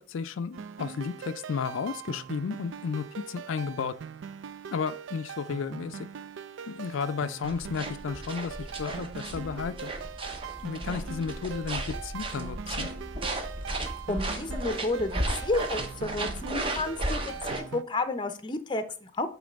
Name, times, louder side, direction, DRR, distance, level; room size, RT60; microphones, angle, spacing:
voice 1, 0.0-4.0 4.7-6.1 6.7-9.9 10.6-12.9, left 6 dB, 75° left, 0.4 m, -33 dB
sound 1, 0.5-17.8, right 7 dB, 70° right, 0.4 m, -42 dB
sound 2, 7.4-17.6, right 1 dB, 25° right, 0.8 m, -35 dB
voice 2, 14.1-19.3, left 2 dB, 25° left, 0.6 m, -31 dB
8.5 x 3.2 x 5.1 m
head